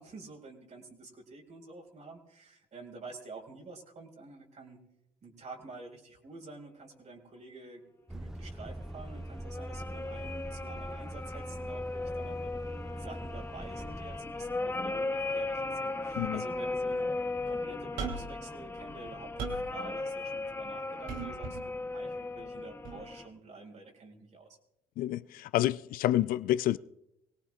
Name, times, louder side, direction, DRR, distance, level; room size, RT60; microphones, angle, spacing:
voice 1, 0.0-4.8 5.2-7.8 8.1-12.5 12.9-17.1 17.4-24.6, right 3 dB, 50° right, 4.7 m, -49 dB
Truck, 8.1-14.2, right 1 dB, 5° right, 0.4 m, -42 dB
sound 1, 8.9-23.3, left 2 dB, 15° left, 0.9 m, -37 dB
sound 2, 18.0-18.4 18.9-19.7 21.1-21.6 22.8-23.0, right 5 dB, 80° right, 2.8 m, -38 dB
voice 2, 25.0-26.8, left 13 dB, 70° left, 0.5 m, -28 dB
24.5 x 18.0 x 2.5 m
supercardioid pair, 75°, 15 cm